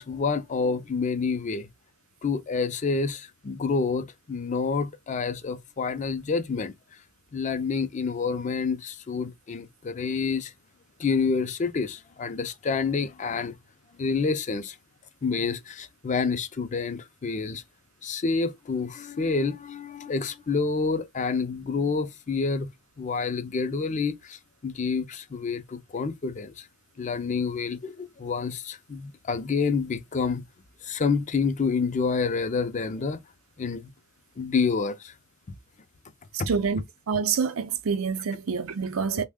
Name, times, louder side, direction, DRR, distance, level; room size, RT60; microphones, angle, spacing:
voice 1, 0.0-1.7 2.2-6.7 7.3-10.5 11.0-13.6 14.0-14.8 15.2-17.6 18.0-22.7 23.0-26.7 27.0-30.4 30.8-33.2 33.6-33.9 34.4-35.1 36.4-36.5, left 4 dB, 35° left, 0.4 m, -28 dB
voice 2, 36.5-39.2, right 5 dB, 80° right, 0.5 m, -27 dB
3.4 x 2.1 x 3.5 m
head